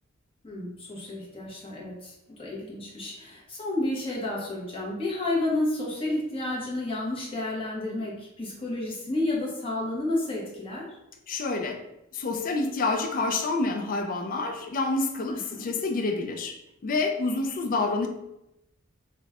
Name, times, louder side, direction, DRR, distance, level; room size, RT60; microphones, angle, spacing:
voice 1, 0.4-10.9 15.3-15.7, left 2 dB, 25° left, -4 dB, 0.8 m, -31 dB
voice 2, 11.3-11.8 12.1-16.6 16.8-18.1, left 3 dB, 40° left, 5 dB, 0.4 m, -28 dB
4.9 x 2.1 x 2.4 m, 0.86 s
head